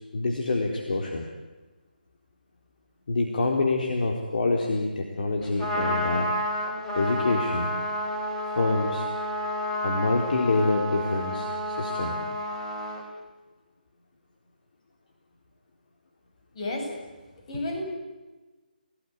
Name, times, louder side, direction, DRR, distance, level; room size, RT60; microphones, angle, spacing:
voice 1, 0.1-1.3 3.1-6.3 6.9-7.7 8.5-9.1 9.8-12.2, left 3 dB, 60° left, 1 dB, 3.8 m, -26 dB
Trumpet, 5.4-13.0, equal, 10° left, 4.5 m, -30 dB
voice 2, 16.5-16.9 17.5-17.8, left 1 dB, 40° left, 2 dB, 7.8 m, -31 dB
29.5 x 17.5 x 9.8 m, 1.2 s
figure-of-eight pair, 155°, 5 cm